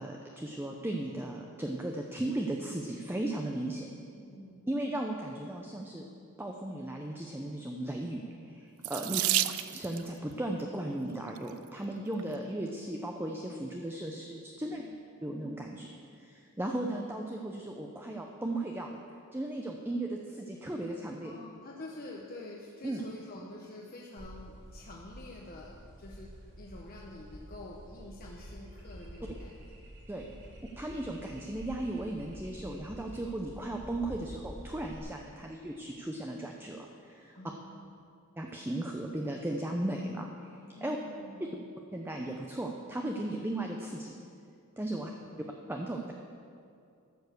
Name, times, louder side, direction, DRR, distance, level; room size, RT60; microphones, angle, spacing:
voice 1, 0.0-3.9 4.7-6.0 6.4-9.2 9.7-14.8 15.2-15.9 16.2-19.0 19.3-21.3 22.8-23.0 30.1-30.3 30.6-37.4 38.4-41.0 41.9-44.1 44.8-45.1 45.7-46.1, right 1 dB, 10° right, 1 dB, 0.7 m, -36 dB
voice 2, 3.9-4.7 9.0-9.4 14.6-15.0 21.2-29.9 37.3-38.1 40.8-41.7 44.9-45.6, left 2 dB, 40° left, -2 dB, 1.0 m, -48 dB
Water tap faucet / Sink (filling or washing), 8.8-10.1 11.1-11.5 12.2-12.3 12.6-12.8, right 14 dB, 70° right, 0.4 m, -31 dB
sound 1, 24.2-35.0, equal, 55° right, 2.2 m, -48 dB
13.0 x 7.2 x 6.5 m, 2.4 s
head